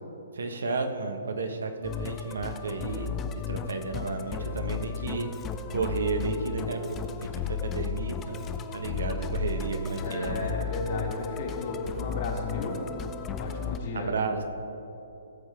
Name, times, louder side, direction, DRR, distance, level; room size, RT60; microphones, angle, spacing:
voice 1, 0.3-3.1 3.5-5.3 5.7-10.5 13.9-14.4, right 4 dB, 70° right, 5 dB, 1.3 m, -32 dB
Musical instrument, 1.8-13.8, left 6 dB, 20° left, 0.5 m, -34 dB
voice 2, 10.0-12.8 13.4-14.1, left 2 dB, 50° left, -1 dB, 2.6 m, -34 dB
17.0 x 6.7 x 4.7 m, 2.9 s
figure-of-eight pair, 130°, 0 cm